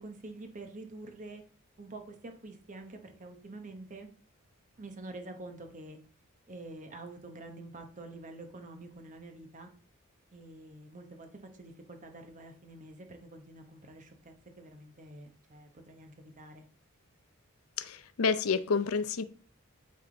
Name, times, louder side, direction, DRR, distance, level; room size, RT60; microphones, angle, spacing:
voice 1, 0.0-1.4 1.8-4.1 4.8-6.0 6.5-9.7 10.3-16.6, right 2 dB, 35° right, 1.0 m, -47 dB
voice 2, 17.8-19.2, left 5 dB, 80° left, 0.5 m, -29 dB
9.0 x 3.5 x 3.9 m
head